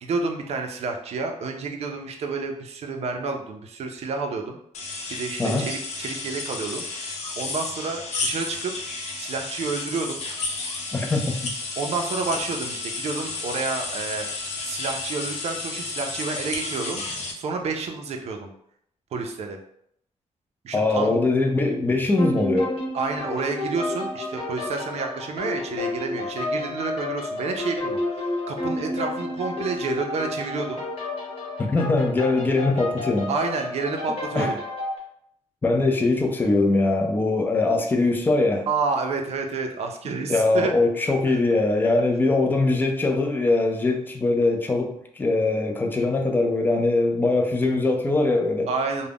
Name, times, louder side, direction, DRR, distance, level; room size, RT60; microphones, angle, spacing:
voice 1, 0.0-4.6 5.1-6.8 7.4-8.7 9.2-10.2 11.8-14.3 14.6-17.0 17.4-18.5 19.1-19.6 20.6-21.1 22.9-30.8 33.3-34.6 38.7-40.7 41.3-41.4 48.7-49.1, right 4 dB, 60° right, 4 dB, 0.4 m, -29 dB
sound 1, 4.7-17.3, left 3 dB, 65° left, 0.6 m, -32 dB
voice 2, 10.9-11.4 20.7-22.7 31.6-33.3 34.4-34.5 35.6-38.7 40.3-48.7, left 2 dB, 15° left, 3 dB, 0.3 m, -22 dB
sound 2, 22.2-35.0, left 2 dB, 50° left, 0.9 m, -31 dB
2.4 x 2.0 x 3.4 m, 0.71 s
wide cardioid pair, 165°, 12 cm